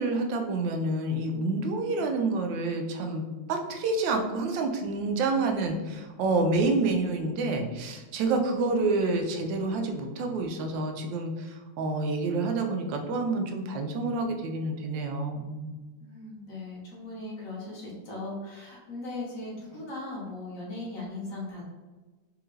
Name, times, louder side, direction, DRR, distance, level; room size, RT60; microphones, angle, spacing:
voice 1, 0.0-15.8, right 3 dB, 90° right, 4 dB, 1.3 m, -28 dB
voice 2, 16.0-21.6, left 2 dB, 55° left, -4 dB, 1.3 m, -38 dB
3.6 x 3.3 x 3.1 m, 1.3 s
omnidirectional pair, 1.9 m